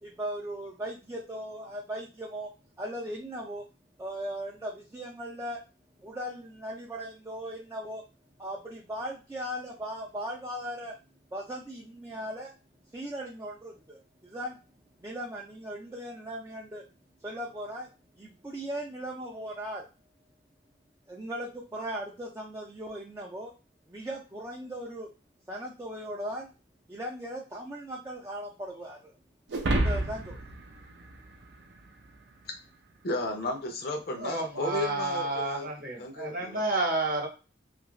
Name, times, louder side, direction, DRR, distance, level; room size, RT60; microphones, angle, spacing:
voice 1, 0.0-2.5 2.8-3.7 4.0-5.6 6.0-8.0 8.4-11.0 11.3-12.5 12.9-14.6 15.0-16.8 17.2-17.9 18.1-19.9 21.1-23.5 23.9-25.1 25.5-26.5 26.9-29.2 29.7-30.4, equal, 15° right, -1 dB, 0.4 m, -38 dB
sound 1, 29.5-32.0, right 1 dB, 70° right, 0.6 m, -30 dB
voice 2, 33.0-35.7 36.0-36.6, left 2 dB, 55° left, 3 dB, 0.6 m, -33 dB
voice 3, 34.2-37.3, right 2 dB, 50° right, 1 dB, 0.9 m, -30 dB
2.6 x 2.5 x 3.1 m, 0.33 s
head